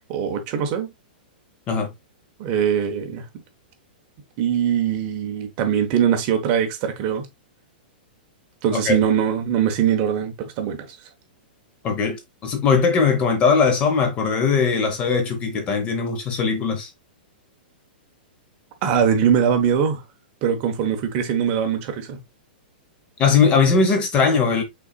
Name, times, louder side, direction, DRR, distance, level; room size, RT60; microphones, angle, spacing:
voice 1, 0.1-0.9 2.4-3.3 4.4-7.3 8.6-11.0 18.8-20.0 20.4-22.2, right 8 dB, 30° right, 1.0 m, -22 dB
voice 2, 11.8-12.2 12.4-16.9 23.2-24.6, left 5 dB, 20° left, 0.9 m, -19 dB
5.7 x 4.0 x 2.3 m
supercardioid pair, 165°, 5 cm